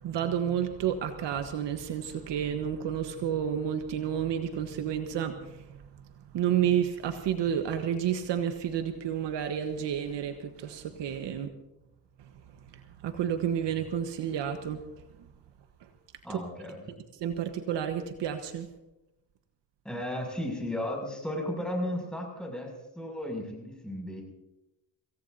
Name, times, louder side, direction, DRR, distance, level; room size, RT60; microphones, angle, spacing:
voice 1, 0.0-5.8 6.3-11.5 13.0-14.8 16.3-16.4 17.2-18.7, right 9 dB, 65° right, 8 dB, 1.4 m, -30 dB
voice 2, 16.2-16.8 19.8-24.2, left 1 dB, ahead, 1 dB, 6.9 m, -34 dB
25.5 x 17.5 x 2.8 m, 0.93 s
cardioid pair, 85°, 46 cm